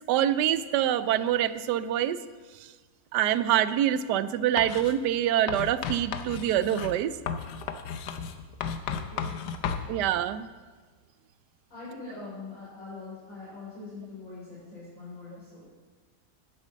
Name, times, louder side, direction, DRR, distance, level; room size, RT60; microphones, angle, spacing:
voice 1, 0.1-2.2 3.1-7.2 9.9-10.5, right 11 dB, 85° right, 15 dB, 1.2 m, -25 dB
Writing, 4.6-5.0 5.5-9.9, left 7 dB, 90° left, 1.4 m, -34 dB
voice 2, 8.9-9.4 9.8-10.0 11.7-15.6, left 3 dB, 50° left, -9 dB, 4.0 m, -43 dB
9.8 x 7.8 x 7.4 m, 1.5 s
omnidirectional pair, 1.8 m